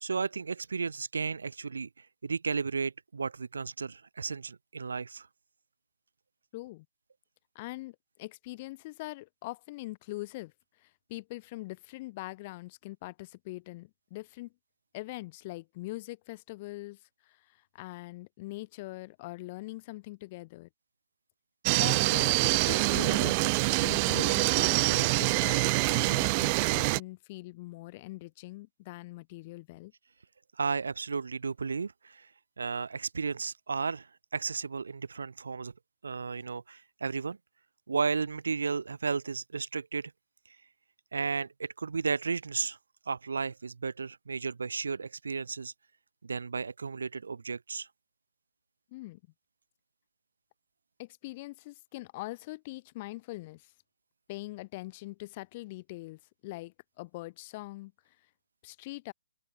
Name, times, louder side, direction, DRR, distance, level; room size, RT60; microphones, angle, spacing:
voice 1, 0.0-1.9 2.2-5.3 30.6-32.3 32.6-34.1 34.3-35.7 36.0-37.4 37.9-40.1 41.1-42.8 43.1-45.7 46.2-47.9, right 5 dB, 75° right, 1.6 m, -33 dB
voice 2, 6.5-6.8 7.5-10.5 10.8-14.5 14.9-20.7 21.7-29.9 48.9-49.2 51.0-53.7 54.3-57.9 58.6-59.1, left 20 dB, 35° left, 1.5 m, -42 dB
sound 1, 21.6-27.0, right 31 dB, 30° right, 0.5 m, -25 dB
open air
figure-of-eight pair, 135°, 0 cm